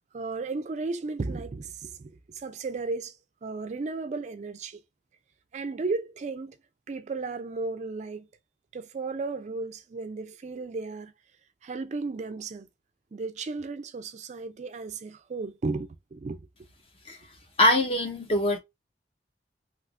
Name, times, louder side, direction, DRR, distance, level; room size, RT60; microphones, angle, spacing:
voice 1, 0.1-3.2 3.4-4.8 5.5-6.6 6.9-8.3 8.7-11.1 11.6-12.7 13.1-16.5, right 3 dB, 40° right, 0.4 m, -34 dB
voice 2, 17.6-18.6, left 1 dB, 35° left, 0.9 m, -23 dB
3.4 x 2.9 x 2.4 m
head